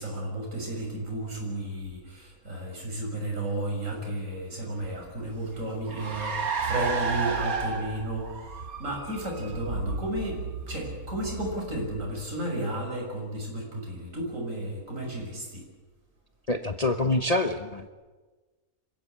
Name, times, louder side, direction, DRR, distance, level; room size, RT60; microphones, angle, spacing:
voice 1, 0.0-8.3 8.8-15.6, right 1 dB, 65° right, -1 dB, 6.5 m, -33 dB
Car, 4.8-12.6, right 4 dB, 85° right, 2.3 m, -33 dB
voice 2, 16.5-17.9, left 2 dB, 30° left, 7 dB, 1.0 m, -26 dB
27.0 x 15.5 x 8.7 m, 1.3 s
omnidirectional pair, 1.5 m